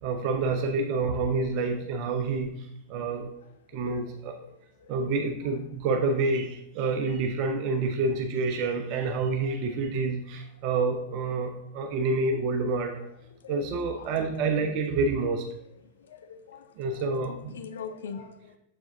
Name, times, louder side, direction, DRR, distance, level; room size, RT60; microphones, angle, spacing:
voice 1, 0.0-3.3 3.7-4.4 4.9-13.0 13.5-15.4 16.8-17.5, right 3 dB, 45° right, 4 dB, 0.7 m, -28 dB
voice 2, 16.1-18.6, left 6 dB, 65° left, 9 dB, 0.6 m, -43 dB
7.0 x 4.8 x 3.9 m, 0.79 s
figure-of-eight pair, 90°, 0 cm